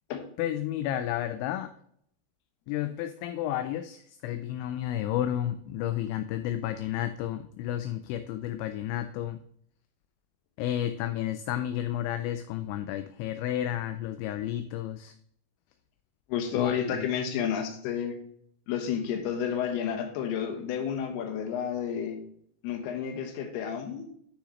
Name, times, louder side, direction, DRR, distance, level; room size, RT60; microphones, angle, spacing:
voice 1, 0.4-1.7 2.7-9.4 10.6-15.1 16.5-17.1, left 12 dB, 85° left, 9 dB, 2.7 m, -32 dB
voice 2, 16.3-18.2 18.7-22.2 22.6-24.1, left 8 dB, 70° left, 5 dB, 2.8 m, -31 dB
9.8 x 6.4 x 3.1 m, 0.67 s
omnidirectional pair, 5.6 m